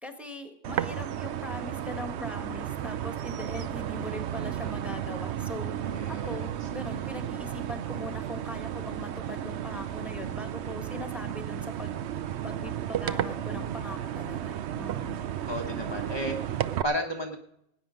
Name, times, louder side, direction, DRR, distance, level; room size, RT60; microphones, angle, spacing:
voice 1, 0.0-5.7 6.1-12.0 12.4-15.2, left 1 dB, ahead, 6 dB, 1.5 m, -41 dB
sound 1, 0.6-16.8, right 10 dB, 60° right, 0.7 m, -33 dB
voice 2, 5.9-6.7 15.5-17.4, equal, 20° left, 1 dB, 1.0 m, -34 dB
19.5 x 9.5 x 5.1 m, 0.79 s
omnidirectional pair, 1.6 m